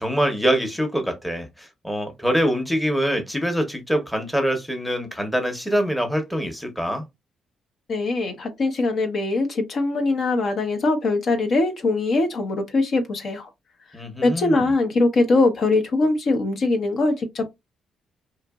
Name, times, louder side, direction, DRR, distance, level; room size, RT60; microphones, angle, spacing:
voice 1, 0.0-7.0 13.9-14.6, equal, 5° left, 0.9 m, -24 dB
voice 2, 7.9-13.5 14.2-17.4, left 2 dB, 55° left, 0.8 m, -22 dB
2.9 x 2.5 x 2.3 m
cardioid pair, 90°, 0 cm